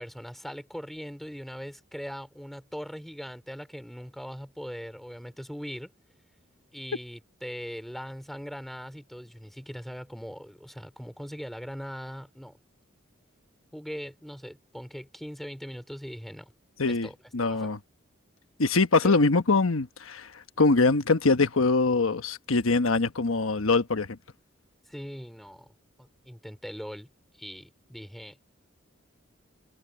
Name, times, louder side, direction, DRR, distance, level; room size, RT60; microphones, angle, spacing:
voice 1, 0.0-5.9 6.7-12.6 13.7-16.5 16.9-17.2 17.4-17.7 19.0-19.2 24.9-27.1 27.4-28.4, equal, ahead, 3.6 m, -40 dB
voice 2, 16.8-17.8 18.6-24.2, left 3 dB, 90° left, 1.2 m, -23 dB
head